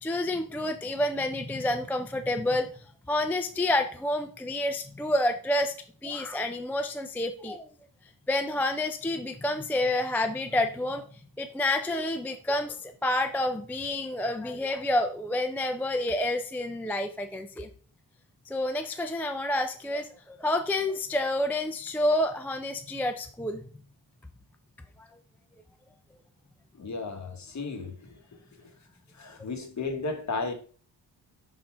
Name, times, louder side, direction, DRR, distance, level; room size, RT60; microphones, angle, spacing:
voice 1, 0.0-2.7 3.1-5.7 6.0-7.7 8.3-11.0 11.4-17.7 18.5-23.6 25.0-25.1, left 1 dB, 5° left, 0.4 m, -29 dB
voice 2, 26.8-28.0 29.2-30.5, left 3 dB, 40° left, 1.2 m, -34 dB
5.6 x 4.0 x 4.3 m
wide cardioid pair, 115°, 42 cm